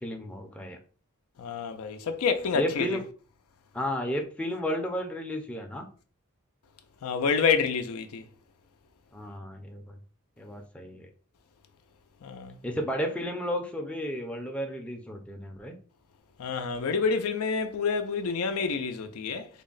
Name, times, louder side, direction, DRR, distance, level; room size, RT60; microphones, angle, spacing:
voice 1, 0.0-0.8 2.5-3.0 3.7-5.8 9.1-10.0 10.4-11.1 12.6-15.8, equal, 5° left, 0.5 m, -33 dB
voice 2, 1.4-3.0 7.0-8.2 12.2-12.5 16.4-19.5, left 5 dB, 80° left, 0.5 m, -28 dB
3.4 x 2.1 x 3.8 m
head